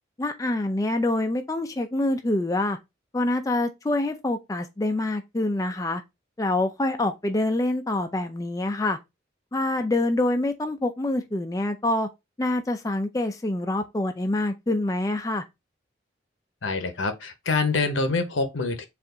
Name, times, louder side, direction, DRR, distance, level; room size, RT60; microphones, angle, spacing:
voice 1, 0.2-2.8 3.1-6.0 6.4-9.0 9.5-12.1 12.4-15.4, left 2 dB, 15° left, 0.4 m, -26 dB
voice 2, 16.6-18.9, left 3 dB, 90° left, 0.9 m, -26 dB
4.4 x 2.5 x 3.8 m
head